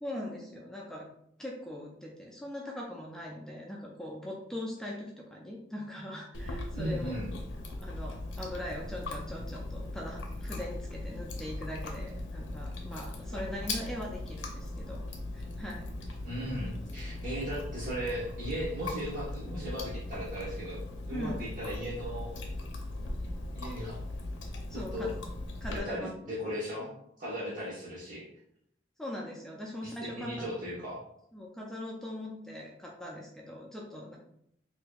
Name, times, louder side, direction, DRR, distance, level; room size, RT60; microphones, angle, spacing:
voice 1, 0.0-1.1 1.4-7.2 7.8-15.0 15.3-15.9 21.1-21.4 24.7-25.2 25.6-26.1 27.4-27.6 29.0-30.4 31.3-34.2, left 1 dB, 5° left, -3 dB, 0.4 m, -41 dB
Chewing mastication, 6.3-25.8, left 2 dB, 80° left, 0.6 m, -39 dB
voice 2, 6.7-7.3 16.2-22.3 23.5-24.0 24.9-25.1 25.6-26.9 27.2-28.3 29.8-31.0, equal, 45° right, -8 dB, 1.1 m, -37 dB
4.3 x 2.7 x 2.3 m, 0.73 s
head